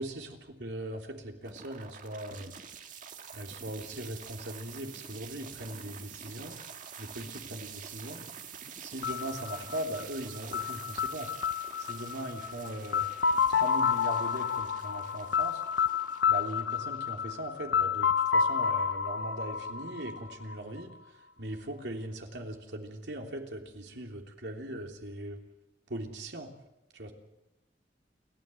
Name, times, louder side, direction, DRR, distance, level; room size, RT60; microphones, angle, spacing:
voice 1, 0.0-2.5 3.3-6.6 7.0-8.2 8.8-11.3 11.8-13.1 13.5-15.6 16.3-20.9 21.4-25.4 25.9-26.5 26.9-27.1, right 1 dB, 75° right, 2 dB, 3.3 m, -39 dB
sound 1, 1.4-17.5, right 7 dB, 50° right, 1.9 m, -47 dB
sound 2, 9.0-20.8, left 6 dB, 85° left, 0.7 m, -30 dB
29.5 x 13.0 x 7.8 m, 0.95 s
head